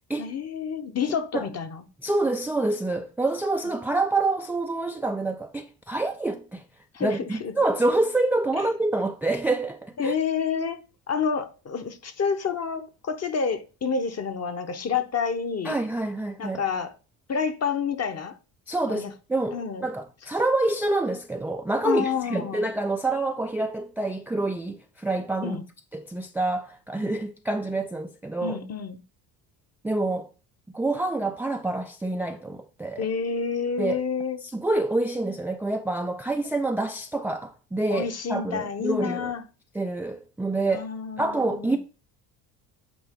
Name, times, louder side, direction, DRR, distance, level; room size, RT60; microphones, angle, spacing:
voice 1, 0.2-1.8 6.9-7.6 8.6-8.7 10.0-15.8 16.4-16.9 17.3-18.4 18.9-19.1 19.5-19.9 21.8-22.7 25.4-25.6 28.4-29.0 33.0-34.4 37.9-39.4 40.7-41.8, left 6 dB, 35° left, 1.0 m, -29 dB
voice 2, 2.0-6.6 7.0-10.1 15.6-16.6 18.7-25.6 25.9-28.6 29.8-30.3 30.7-33.1 33.8-34.0 34.5-39.3 39.8-40.9 41.2-41.8, right 2 dB, 5° right, 0.4 m, -27 dB
8.7 x 3.2 x 3.6 m
supercardioid pair, 75°, 43 cm